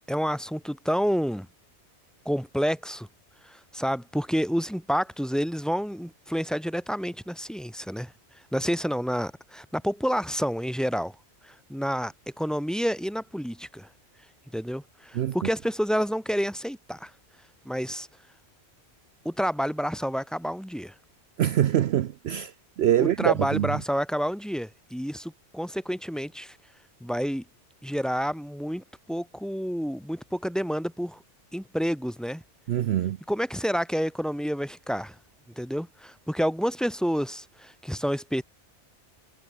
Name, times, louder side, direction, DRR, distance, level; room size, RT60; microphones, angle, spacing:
voice 1, 0.0-1.5 2.3-3.1 3.4-8.1 8.5-11.1 11.4-13.9 14.5-17.1 17.7-18.1 19.3-20.9 23.0-26.6 27.0-27.4 27.8-31.2 31.5-32.4 33.3-35.2 35.6-38.4, equal, ahead, 5.2 m, -29 dB
voice 2, 21.4-23.8 32.7-33.2, right 11 dB, 65° right, 0.8 m, -24 dB
omnidirectional pair, 1.2 m